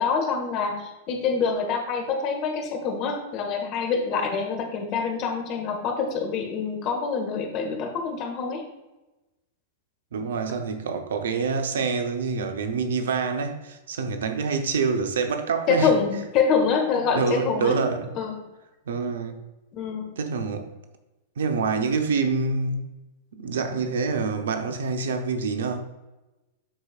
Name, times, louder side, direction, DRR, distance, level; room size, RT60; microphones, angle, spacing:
voice 1, 0.0-8.6 15.7-17.8 18.1-18.4 19.7-20.1, left 5 dB, 40° left, 1.4 m, -26 dB
voice 2, 10.1-16.2 17.1-18.1 18.9-19.4 20.2-20.6 21.4-22.9 23.3-25.8, right 4 dB, 70° right, 0.8 m, -26 dB
11.5 x 4.7 x 2.5 m
figure-of-eight pair, 100°, 0 cm